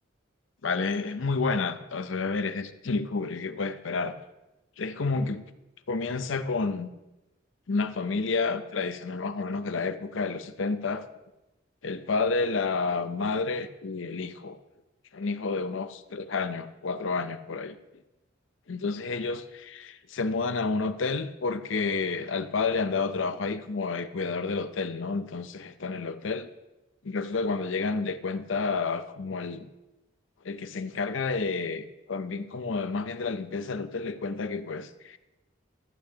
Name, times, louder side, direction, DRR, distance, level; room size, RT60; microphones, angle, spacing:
voice 1, 0.6-4.2 4.8-5.4 5.9-6.9 7.7-11.0 11.8-14.6 15.1-17.8 18.7-26.5 27.0-29.7 30.4-35.2, left 4 dB, 75° left, 11 dB, 0.6 m, -30 dB
14.0 x 8.9 x 2.9 m, 1.0 s
head